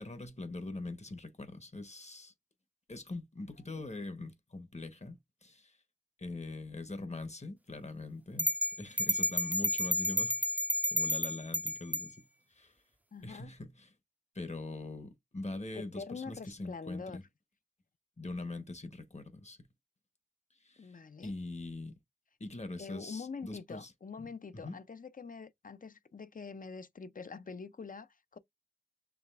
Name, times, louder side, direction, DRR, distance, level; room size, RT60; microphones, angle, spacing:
voice 1, 0.0-2.3 2.9-5.8 6.2-8.5 8.8-10.5 10.9-12.2 12.5-12.7 13.2-13.9 14.3-17.2 18.2-19.6 20.6-20.9 21.2-21.9 22.4-23.9 24.2-24.7, left 2 dB, 50° left, 0.9 m, -42 dB
sound 1, 8.4-12.1, left 1 dB, 10° right, 0.4 m, -31 dB
voice 2, 13.1-13.5 15.7-17.2 20.8-21.3 22.8-28.4, left 5 dB, 65° left, 0.5 m, -45 dB
4.9 x 3.2 x 2.4 m
wide cardioid pair, 50°, 15 cm